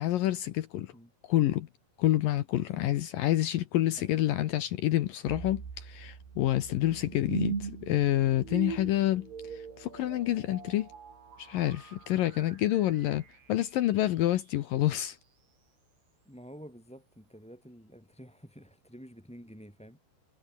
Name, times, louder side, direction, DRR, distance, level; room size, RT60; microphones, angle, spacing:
voice 1, 0.0-0.9 1.3-1.7 2.0-10.9 11.4-15.2, left 14 dB, 75° left, 2.0 m, -28 dB
voice 2, 2.6-3.1 3.4-3.5 4.0-4.2 7.1-7.3 16.2-20.0, equal, ahead, 7.4 m, -50 dB
sound 1, 5.3-14.4, right 6 dB, 60° right, 6.7 m, -41 dB
omnidirectional pair, 5.3 m